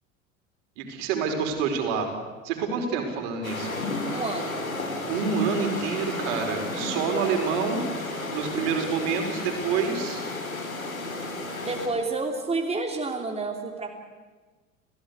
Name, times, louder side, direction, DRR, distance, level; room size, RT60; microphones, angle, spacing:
voice 1, 0.8-2.1 2.4-3.7 5.0-7.8 8.3-10.2, right 5 dB, 55° right, 4 dB, 4.9 m, -27 dB
sound 1, 3.4-11.9, left 2 dB, 85° left, 4.1 m, -33 dB
voice 2, 4.1-4.7 11.6-14.0, right 3 dB, 15° right, 2 dB, 3.3 m, -29 dB
30.0 x 16.5 x 8.3 m, 1.3 s
figure-of-eight pair, 75°, 41 cm